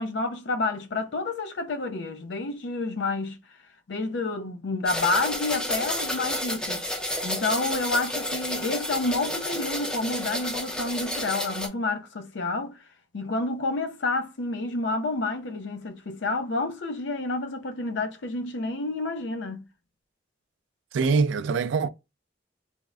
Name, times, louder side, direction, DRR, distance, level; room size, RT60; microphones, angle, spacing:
voice 1, 0.0-3.4 3.9-6.8 7.2-12.8 13.1-19.7, left 3 dB, 70° left, 0.5 m, -29 dB
sound 1, 4.9-11.7, left 1 dB, 5° left, 0.5 m, -31 dB
voice 2, 20.9-21.9, right 4 dB, 80° right, 0.3 m, -23 dB
3.5 x 2.0 x 3.5 m
head